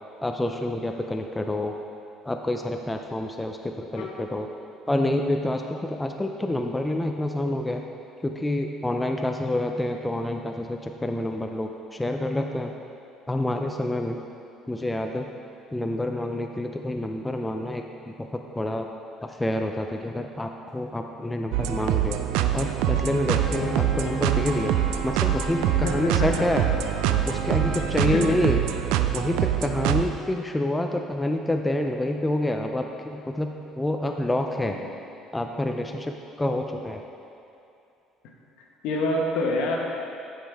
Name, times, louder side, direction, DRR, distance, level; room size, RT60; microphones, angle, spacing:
voice 1, 0.2-1.8 2.2-4.5 4.9-7.8 8.2-12.7 13.3-14.2 14.7-15.3 15.7-18.9 19.2-22.2 22.5-24.7 25.0-26.6 27.3-28.6 29.1-34.8 35.3-37.0, left 1 dB, 10° left, 3 dB, 0.3 m, -28 dB
sound 1, 21.5-30.0, right 11 dB, 85° right, 0.3 m, -25 dB
Wind instrument woodwind instrument, 23.2-28.1, equal, 30° left, 1.7 m, -36 dB
voice 2, 25.8-26.5 28.0-28.4 34.7-34.8 38.8-39.8, left 2 dB, 75° left, -1 dB, 1.2 m, -27 dB
12.5 x 5.2 x 3.5 m, 2.6 s
cardioid pair, 150°, 0 cm